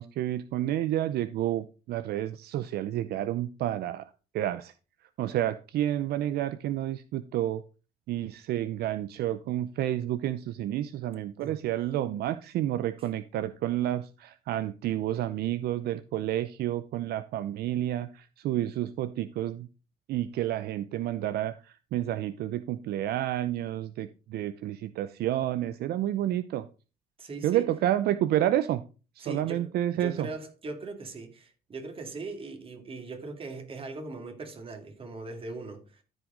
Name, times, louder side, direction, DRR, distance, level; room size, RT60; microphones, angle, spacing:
voice 1, 0.0-4.7 5.2-7.6 8.1-19.7 20.1-26.7 27.4-28.8 29.2-30.3, right 12 dB, 70° right, 0.6 m, -30 dB
voice 2, 27.2-27.7 29.2-36.0, right 3 dB, 35° right, 2.5 m, -40 dB
13.5 x 5.0 x 3.9 m
cardioid pair, 110°, 17 cm